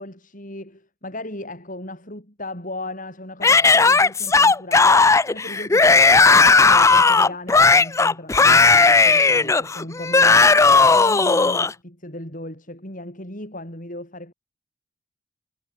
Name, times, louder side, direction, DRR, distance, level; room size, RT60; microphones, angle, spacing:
voice 1, 0.0-6.0 6.3-14.3, left 1 dB, 40° left, 7.2 m, -36 dB
Yell / Screaming, 3.4-11.7, left 4 dB, 15° left, 0.3 m, -15 dB
head